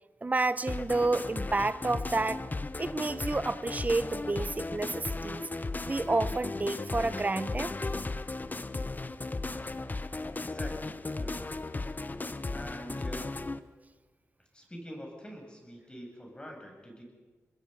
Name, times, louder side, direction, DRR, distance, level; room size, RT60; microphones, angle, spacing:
voice 1, 0.2-2.4 2.8-5.5 5.8-7.7, right 3 dB, 30° right, 14 dB, 0.8 m, -30 dB
sound 1, 0.7-13.6, left 3 dB, 35° left, 1.0 m, -36 dB
voice 2, 10.4-11.5 12.5-13.3 14.5-17.0, equal, 20° left, 1 dB, 7.5 m, -45 dB
26.5 x 20.5 x 5.5 m, 1.3 s
cardioid pair, 55°, 5 cm